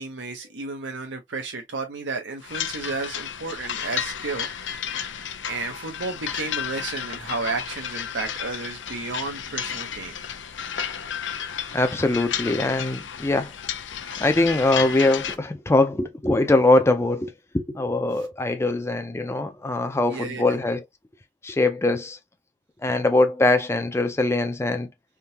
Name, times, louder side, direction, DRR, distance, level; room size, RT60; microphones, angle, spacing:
voice 1, 0.0-4.8 5.4-10.2 18.2-18.3 20.1-20.6, right 3 dB, 85° right, 0.8 m, -32 dB
sound 1, 2.4-15.4, left 8 dB, 85° left, 0.6 m, -32 dB
voice 2, 11.7-13.5 14.2-20.8 21.4-22.2 22.8-24.9, left 2 dB, 15° left, 0.4 m, -22 dB
3.6 x 2.7 x 2.7 m
head